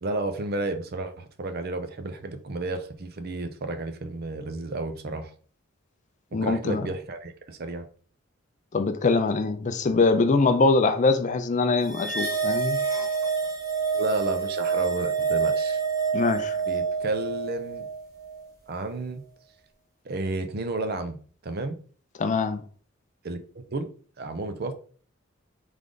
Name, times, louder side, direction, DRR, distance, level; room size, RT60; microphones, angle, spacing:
voice 1, 0.0-5.3 6.3-7.9 13.9-15.8 16.7-17.9 18.7-19.2 20.0-21.2 21.4-21.8 23.2-23.4 23.7-23.9 24.2-24.7, right 2 dB, 50° right, 0.6 m, -31 dB
voice 2, 6.3-6.8 8.7-12.8 16.1-16.6 22.2-22.6, left 3 dB, 35° left, 0.4 m, -23 dB
sound 1, 11.9-18.5, right 5 dB, 20° right, 1.5 m, -27 dB
3.7 x 3.3 x 3.8 m
head